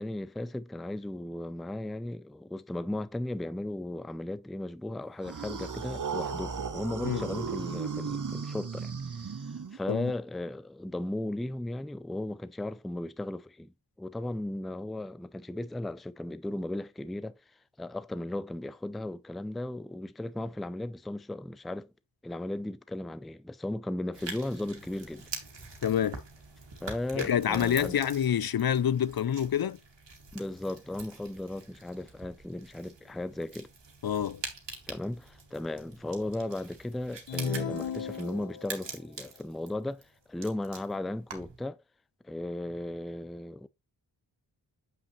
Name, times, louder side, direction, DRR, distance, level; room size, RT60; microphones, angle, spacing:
voice 1, 0.0-9.3 9.7-13.7 14.0-17.3 17.8-21.9 22.2-25.3 26.8-28.0 30.3-33.7 34.9-41.8 42.2-43.7, left 1 dB, ahead, 0.4 m, -36 dB
sound 1, 5.2-10.0, right 5 dB, 45° right, 0.9 m, -35 dB
sound 2, 24.1-41.6, right 4 dB, 75° right, 2.0 m, -45 dB
voice 2, 25.8-26.2 27.2-29.8 34.0-34.4, left 9 dB, 55° left, 0.5 m, -27 dB
sound 3, 37.3-38.9, left 5 dB, 80° left, 1.1 m, -34 dB
7.8 x 5.9 x 3.1 m
wide cardioid pair, 95°, 43 cm